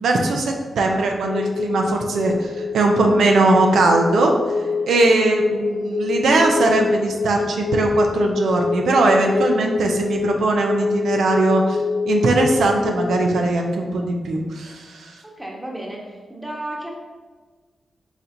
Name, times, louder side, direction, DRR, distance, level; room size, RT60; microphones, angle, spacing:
voice 1, 0.0-15.2, right 2 dB, 90° right, 2 dB, 0.5 m, -20 dB
sound 1, 1.3-13.3, left 4 dB, 85° left, 0.5 m, -25 dB
voice 2, 15.2-16.9, right 1 dB, 10° right, -2 dB, 0.9 m, -33 dB
4.3 x 4.0 x 2.6 m, 1.4 s
cardioid pair, 100°, 0 cm